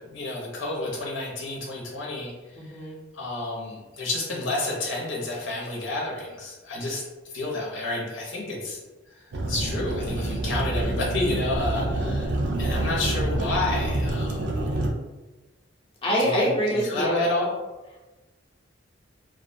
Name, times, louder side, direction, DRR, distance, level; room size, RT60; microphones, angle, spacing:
voice 1, 0.0-2.3 3.1-7.0 7.3-8.9 9.5-12.3 12.6-14.6 16.2-17.5, left 2 dB, 90° left, -2 dB, 0.7 m, -30 dB
voice 2, 2.6-3.0 16.0-17.2, equal, 30° left, -5 dB, 0.5 m, -25 dB
sound 1, 9.3-14.9, right 1 dB, 65° right, 0.4 m, -27 dB
2.4 x 2.2 x 2.6 m, 1.1 s
head